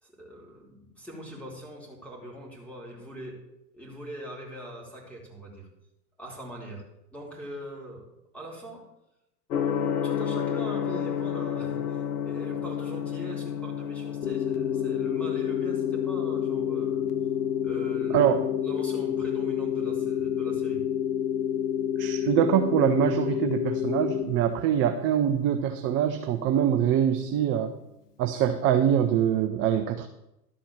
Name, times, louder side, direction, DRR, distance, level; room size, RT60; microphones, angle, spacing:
voice 1, 0.0-3.4 3.7-5.7 6.2-6.8 7.1-8.0 8.3-8.8 10.0-17.1 17.6-18.3 18.6-20.8, equal, 5° left, -2 dB, 3.1 m, -42 dB
Gong, 9.5-27.4, left 8 dB, 75° left, 1.1 m, -35 dB
sound 1, 14.2-24.2, left 9 dB, 60° left, 2.7 m, -28 dB
voice 2, 18.1-18.5 22.0-27.7 28.2-30.1, right 10 dB, 25° right, 6 dB, 0.6 m, -24 dB
12.0 x 4.3 x 7.3 m, 0.87 s
hypercardioid pair, 105°, 46 cm